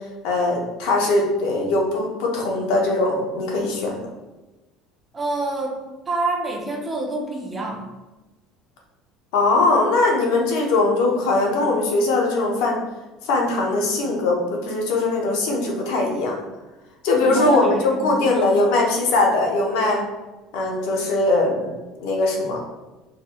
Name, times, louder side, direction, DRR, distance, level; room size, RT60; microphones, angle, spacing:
voice 1, 0.2-3.9 9.3-12.8 13.2-16.4 17.0-20.0 20.5-21.7 22.0-22.6, left 2 dB, 75° left, 0 dB, 0.7 m, -20 dB
voice 2, 5.1-5.8 6.1-7.9 17.2-18.5, right 2 dB, 15° right, 0 dB, 0.5 m, -27 dB
3.8 x 3.1 x 2.2 m, 1.1 s
cardioid pair, 170°, 0 cm